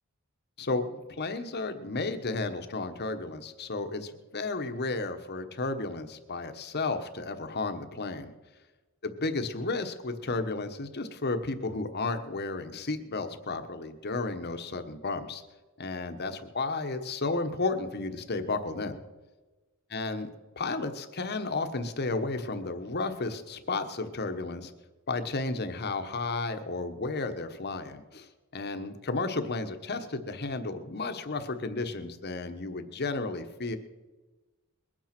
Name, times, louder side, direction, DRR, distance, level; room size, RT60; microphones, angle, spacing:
voice 1, 0.6-8.3 9.0-15.4 15.8-19.0 19.9-20.3 20.6-24.7 25.1-33.8, left 3 dB, 50° left, 8 dB, 1.2 m, -33 dB
21.5 x 8.9 x 6.0 m, 1.2 s
head